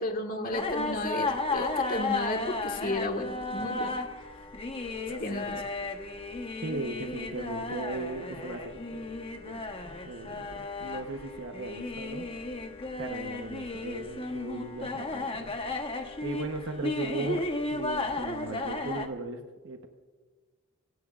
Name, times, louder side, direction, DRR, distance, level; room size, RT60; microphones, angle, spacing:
voice 1, 0.0-4.0 5.2-5.6, left 1 dB, 40° left, 3 dB, 1.7 m, -33 dB
sound 1, 0.5-19.1, left 2 dB, 25° left, 1.1 m, -34 dB
voice 2, 5.1-5.6 6.6-9.1 9.4-9.6 10.0-12.3 13.0-15.5 15.8-15.9 16.2-19.9, right 2 dB, 60° right, 4 dB, 1.0 m, -37 dB
26.5 x 17.0 x 2.5 m, 1.4 s
head